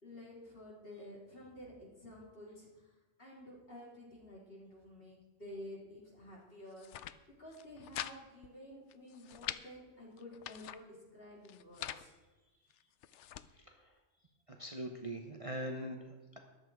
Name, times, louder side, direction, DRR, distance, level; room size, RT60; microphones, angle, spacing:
voice 1, 0.0-2.7 3.2-6.9 7.4-12.1, left 1 dB, 45° left, -4 dB, 3.9 m, -51 dB
sound 1, 6.7-7.2 7.5-8.2 8.4-8.5 8.9-9.6 10.2-10.8 11.5-12.1 12.7-13.5, left 11 dB, 70° left, 0.8 m, -44 dB
voice 2, 14.5-16.4, right 1 dB, 30° right, 2 dB, 1.0 m, -42 dB
14.0 x 10.5 x 4.7 m, 1.2 s
omnidirectional pair, 1.3 m